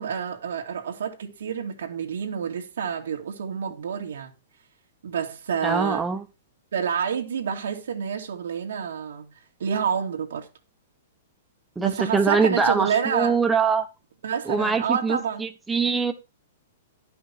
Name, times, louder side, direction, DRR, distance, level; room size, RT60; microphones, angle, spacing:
voice 1, 0.0-4.3 5.0-6.0 6.7-9.3 9.6-10.5 11.8-13.4 14.2-15.5, right 7 dB, 90° right, 2.2 m, -28 dB
voice 2, 5.6-6.3 11.8-13.9 14.5-16.1, right 4 dB, 5° right, 1.0 m, -23 dB
11.5 x 5.7 x 5.7 m
hypercardioid pair, 165°, 0 cm